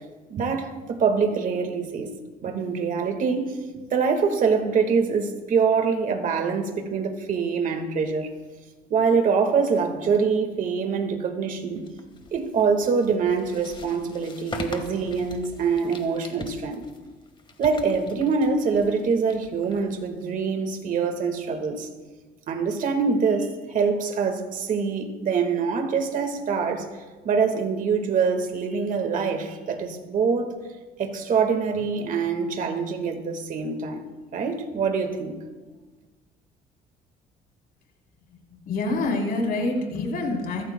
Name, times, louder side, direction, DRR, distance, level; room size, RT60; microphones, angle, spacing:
voice 1, 0.3-2.1 2.4-3.6 3.9-8.3 8.9-11.8 12.3-16.8 17.6-21.9 22.5-26.9 27.2-30.6 31.0-35.4, right 5 dB, 50° right, 5 dB, 1.7 m, -24 dB
sound 1, 11.8-20.4, left 4 dB, 30° left, 1.5 m, -42 dB
voice 2, 38.7-40.6, left 2 dB, 65° left, 0 dB, 3.7 m, -26 dB
22.0 x 14.5 x 2.2 m, 1.3 s
cardioid pair, 110°, 17 cm